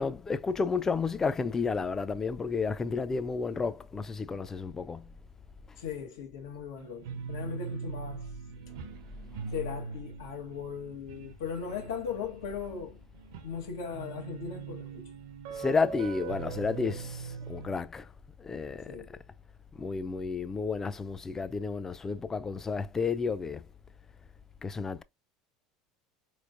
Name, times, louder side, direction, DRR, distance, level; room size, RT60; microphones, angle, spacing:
voice 1, 0.0-5.1 9.2-9.5 15.6-18.1 18.4-19.2 19.8-23.6 24.6-25.0, left 4 dB, 20° left, 0.4 m, -32 dB
voice 2, 5.8-8.3 9.5-13.0 13.4-15.1 18.9-19.1, left 7 dB, 90° left, 1.1 m, -38 dB
sound 1, 6.8-17.8, right 6 dB, 80° right, 0.7 m, -41 dB
4.3 x 3.1 x 2.4 m
supercardioid pair, 105°, 2 cm